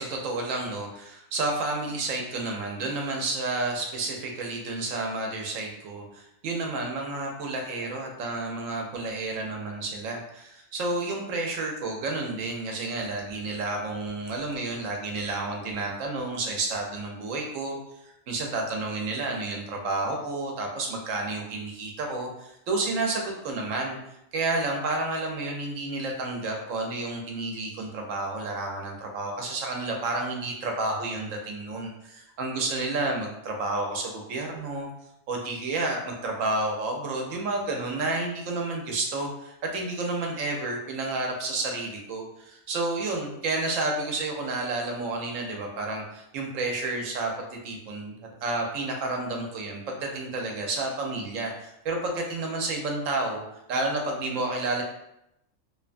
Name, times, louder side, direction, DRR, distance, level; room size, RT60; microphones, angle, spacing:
voice 1, 0.0-17.8 18.0-24.0 24.3-34.9 35.3-48.1 48.4-53.4 53.7-54.8, right 2 dB, 85° right, 1 dB, 1.0 m, -30 dB
2.8 x 2.2 x 2.4 m, 0.84 s
omnidirectional pair, 1.3 m